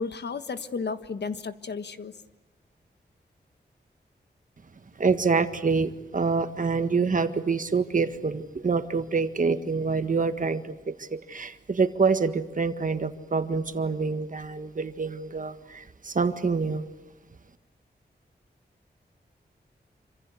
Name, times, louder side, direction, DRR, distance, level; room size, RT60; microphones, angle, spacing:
voice 1, 0.0-2.1, left 4 dB, 75° left, 11 dB, 1.4 m, -33 dB
voice 2, 5.0-16.8, right 4 dB, 50° right, 9 dB, 1.7 m, -26 dB
27.0 x 26.0 x 8.3 m, 0.97 s
wide cardioid pair, 115°, 18 cm